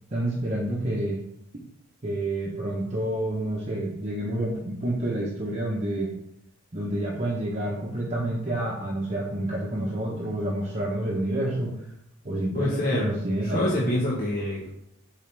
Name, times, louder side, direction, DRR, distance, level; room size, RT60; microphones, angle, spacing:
voice 1, 0.1-1.2 2.0-6.1 6.7-11.7 12.2-13.9, right 1 dB, 35° right, -4 dB, 0.9 m, -28 dB
voice 2, 12.5-13.1 13.4-14.7, left 1 dB, 40° left, -5 dB, 1.2 m, -26 dB
7.2 x 4.9 x 3.4 m, 0.76 s
head